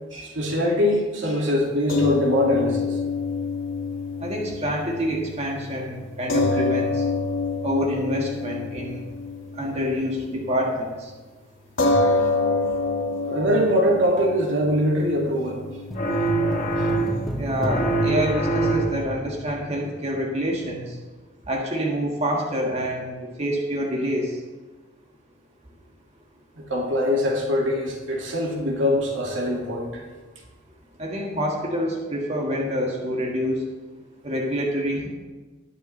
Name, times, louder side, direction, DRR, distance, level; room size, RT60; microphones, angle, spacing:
voice 1, 0.1-3.0 13.3-15.6 26.7-30.0, equal, 75° right, -1 dB, 2.2 m, -23 dB
sound 1, 1.9-10.4 10.7-10.9 11.8-18.3, left 3 dB, 85° left, 1.7 m, -27 dB
voice 2, 4.2-7.0 7.6-9.0 9.6-11.1 17.3-20.8 21.5-24.3 31.0-33.6 34.2-35.1, equal, 35° right, -2 dB, 1.7 m, -27 dB
sound 2, 15.9-17.4 17.7-19.2, right 2 dB, 45° left, 1.1 m, -24 dB
sound 3, 15.9-20.4 20.6-20.7, equal, ahead, 0.5 m, -33 dB
19.5 x 6.9 x 3.2 m, 1.3 s
head